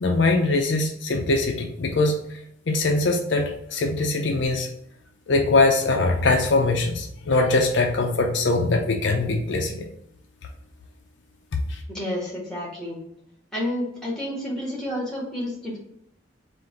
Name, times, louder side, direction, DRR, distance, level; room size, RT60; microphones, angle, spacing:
voice 1, 0.0-2.2 2.7-4.7 5.3-9.9 11.7-11.8, left 2 dB, 65° left, 2 dB, 0.5 m, -22 dB
voice 2, 11.9-13.0 13.5-15.8, left 1 dB, 5° left, -5 dB, 1.6 m, -30 dB
3.7 x 2.5 x 4.5 m, 0.74 s
head